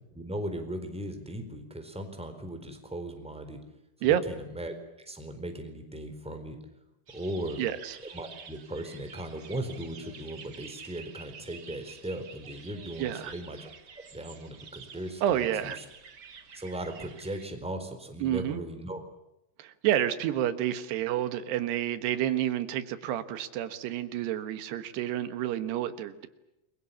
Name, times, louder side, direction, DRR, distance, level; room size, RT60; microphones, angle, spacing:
voice 1, 0.1-3.6 4.0-6.6 7.1-7.6 8.1-13.7 14.1-15.5 16.5-19.0, right 1 dB, ahead, 6 dB, 3.7 m, -38 dB
sound 1, 7.1-17.5, right 6 dB, 60° right, 1.0 m, -49 dB
voice 2, 7.6-8.0 13.0-13.3 15.2-15.8 18.2-18.6 19.6-26.3, right 11 dB, 85° right, 11 dB, 3.5 m, -29 dB
29.5 x 23.5 x 7.2 m, 0.88 s
omnidirectional pair, 4.7 m